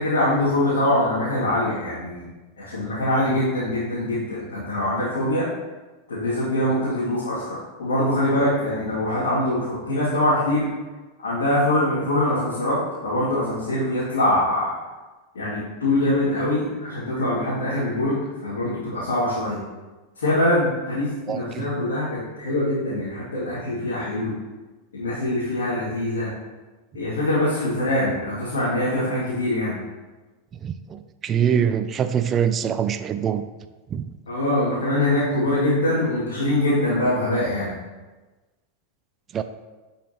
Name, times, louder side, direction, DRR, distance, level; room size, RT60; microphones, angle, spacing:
voice 1, 0.0-2.3 2.6-5.5 6.1-10.7 11.2-14.7 15.3-19.6 20.2-24.3 24.9-26.3 26.9-29.8 34.3-37.7, left 1 dB, 75° left, -10 dB, 2.6 m, -23 dB
voice 2, 21.3-21.7 30.6-33.5 33.9-34.0 39.3-39.4, right 8 dB, 30° right, 10 dB, 0.4 m, -24 dB
11.0 x 5.6 x 3.1 m, 1.2 s
figure-of-eight pair, 90°, 0 cm